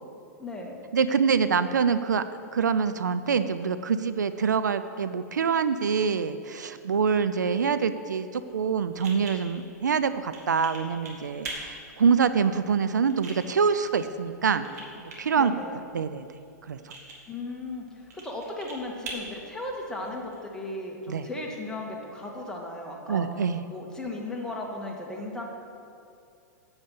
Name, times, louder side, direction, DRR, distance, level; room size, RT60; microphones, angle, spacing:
voice 1, 0.4-0.8 15.3-15.7 17.3-23.2 23.7-25.4, left 2 dB, 5° left, -1 dB, 2.2 m, -36 dB
voice 2, 0.9-14.7 15.2-15.5 15.9-16.3 16.7-16.9 21.1-21.3 23.1-23.6, right 6 dB, 80° right, 12 dB, 0.5 m, -25 dB
sound 1, 8.3-20.4, right 2 dB, 65° right, 2.6 m, -45 dB
8.7 x 8.1 x 7.7 m, 2.5 s
hypercardioid pair, 105°, 9 cm